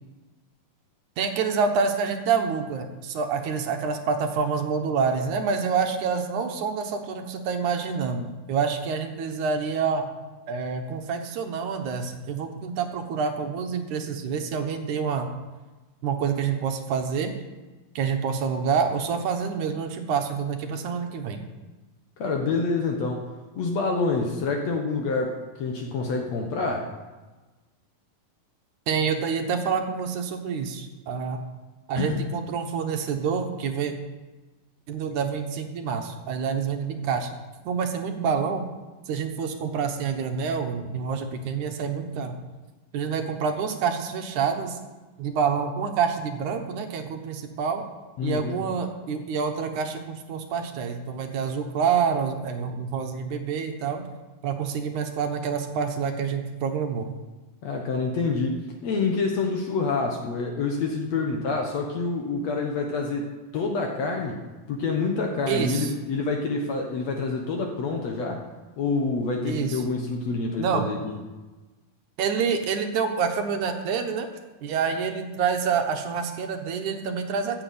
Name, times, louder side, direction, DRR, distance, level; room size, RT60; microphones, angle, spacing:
voice 1, 1.2-10.1 10.5-15.3 16.0-17.3 18.0-21.4 28.9-31.4 31.9-33.9 34.9-37.3 37.7-38.6 39.1-42.4 42.9-44.8 45.2-47.9 48.2-54.0 54.4-57.1 65.5-65.9 69.5-69.8 70.6-70.9 72.2-74.3 74.6-77.6, right 6 dB, 65° right, 5 dB, 2.3 m, -27 dB
voice 2, 22.2-23.3 23.6-26.9 32.0-32.2 48.2-48.6 57.6-64.4 64.7-68.4 68.8-71.1, left 4 dB, 60° left, 2 dB, 2.0 m, -27 dB
14.5 x 7.0 x 8.5 m, 1.2 s
omnidirectional pair, 4.2 m